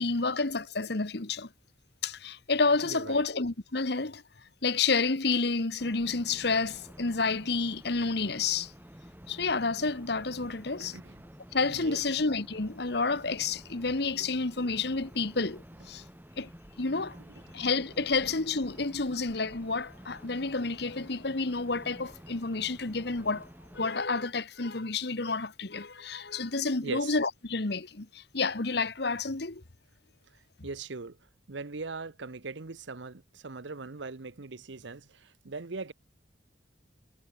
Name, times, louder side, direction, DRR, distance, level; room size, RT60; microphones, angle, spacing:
voice 1, 0.0-1.5 2.0-4.2 4.6-8.7 9.3-11.0 11.5-16.0 16.4-16.5 16.8-17.1 17.5-23.5 23.7-29.6, left 4 dB, 60° left, 1.3 m, -30 dB
voice 2, 2.8-3.2 10.8-11.2 11.6-12.0 14.2-14.3 17.2-17.4 26.8-27.2 30.3-31.2 31.5-35.9, right 4 dB, 75° right, 0.9 m, -41 dB
sound 1, 5.8-23.9, equal, 10° right, 5.9 m, -51 dB
head